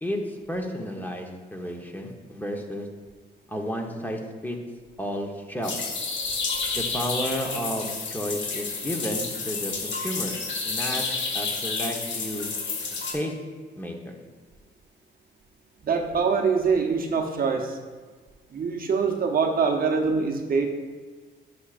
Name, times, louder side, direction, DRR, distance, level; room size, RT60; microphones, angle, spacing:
voice 1, 0.0-2.9 3.5-4.6 5.0-5.8 6.7-11.0 11.3-12.5 13.1-13.3 13.7-14.2, equal, 10° left, 1 dB, 1.1 m, -32 dB
sound 1, 5.6-13.1, left 4 dB, 65° left, 1.7 m, -30 dB
voice 2, 15.8-17.8 18.5-20.7, right 5 dB, 45° right, 3 dB, 0.9 m, -24 dB
11.0 x 6.0 x 2.5 m, 1.4 s
cardioid pair, 90°, 20 cm